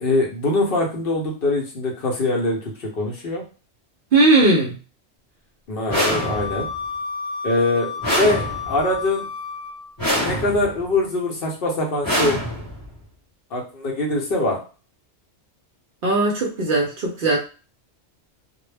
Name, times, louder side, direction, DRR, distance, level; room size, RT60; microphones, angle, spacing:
voice 1, 0.0-3.4 5.7-6.7 7.4-9.3 10.2-12.4 13.5-14.6, left 2 dB, 60° left, -1 dB, 0.8 m, -23 dB
voice 2, 4.1-4.7 16.0-17.4, right 2 dB, 60° right, -1 dB, 0.6 m, -18 dB
sound 1, 5.9-6.8 8.0-8.9 10.0-10.8 12.0-12.9, equal, 20° left, 0.8 m, -25 dB
Wind instrument woodwind instrument, 5.9-9.9, left 5 dB, 20° right, 1.0 m, -31 dB
2.2 x 2.0 x 3.2 m, 0.35 s
omnidirectional pair, 1.2 m